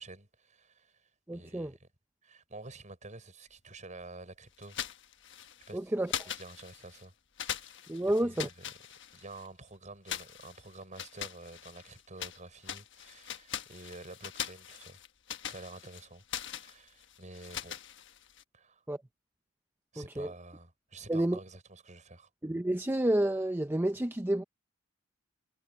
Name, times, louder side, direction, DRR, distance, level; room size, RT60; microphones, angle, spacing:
voice 1, 0.0-1.9 2.2-4.8 5.7-5.9 6.3-7.1 7.4-8.6 9.1-15.0 15.4-16.2 16.5-17.8 18.5-18.8 19.9-22.3, right 2 dB, 40° right, 6.3 m, -49 dB
voice 2, 1.3-1.7 5.7-6.1 7.9-8.5 18.9-19.0 20.0-20.3 21.1-21.4 22.4-24.4, right 1 dB, 10° right, 0.6 m, -30 dB
sound 1, 4.6-5.7 6.1-7.0 7.4-9.5 10.1-12.4 12.6-18.4, left 9 dB, 60° left, 1.3 m, -41 dB
head